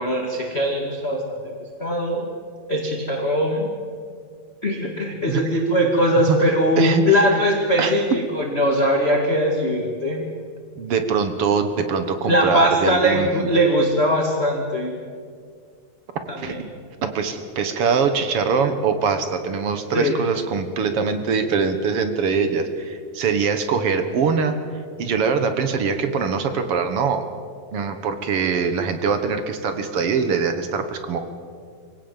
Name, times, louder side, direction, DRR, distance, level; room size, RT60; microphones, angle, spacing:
voice 1, 0.0-1.5 1.8-2.3 2.7-3.7 4.6-10.2 12.3-14.9 16.3-16.6 19.9-20.1, equal, 25° left, 0 dB, 1.8 m, -21 dB
voice 2, 6.8-7.4 7.8-7.9 10.8-13.5 16.4-16.5 17.0-24.6 25.0-27.2 27.7-31.2, right 5 dB, 55° right, 9 dB, 1.8 m, -23 dB
24.0 x 17.0 x 7.3 m, 2.1 s
omnidirectional pair, 3.9 m